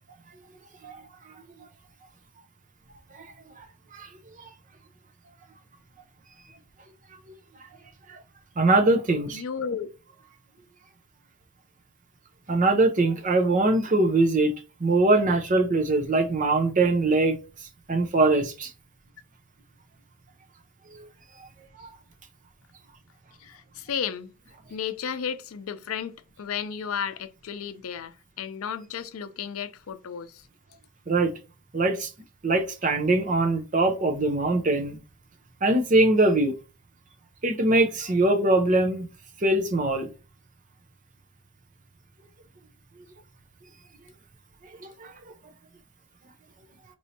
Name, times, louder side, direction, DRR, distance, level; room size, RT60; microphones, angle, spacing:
voice 1, 0.8-1.3 3.1-3.2 3.6-3.7 3.9-4.1 8.1-8.2 8.6-9.4 12.5-14.5 14.8-17.4 17.9-18.7 20.9-21.1 21.8-21.9 31.1-31.3 31.7-32.1 32.4-35.0 35.6-36.5 37.4-39.1 39.4-40.1 44.8-45.1, right 2 dB, 40° right, 0.7 m, -22 dB
voice 2, 9.3-9.9 23.4-24.3 24.7-30.4, left 7 dB, 90° left, 0.5 m, -33 dB
4.4 x 3.0 x 2.8 m
head